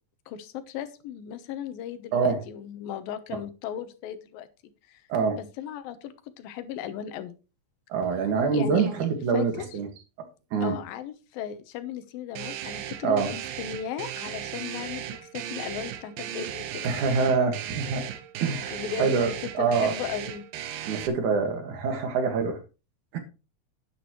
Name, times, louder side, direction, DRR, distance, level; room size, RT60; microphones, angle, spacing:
voice 1, 0.3-4.5 4.9-5.0 5.4-7.3 8.5-8.8 9.3-9.5 10.6-16.9 18.7-20.4, left 9 dB, 90° left, 10 dB, 2.8 m, -36 dB
voice 2, 7.9-9.9 10.5-10.8 13.0-13.3 16.8-18.0 18.4-19.3 19.5-20.0 20.8-22.6 23.1-23.2, right 5 dB, 65° right, 5 dB, 3.1 m, -25 dB
sound 1, 12.4-21.1, right 11 dB, 80° right, 2.6 m, -36 dB
10.5 x 9.9 x 3.1 m, 0.32 s
omnidirectional pair, 4.0 m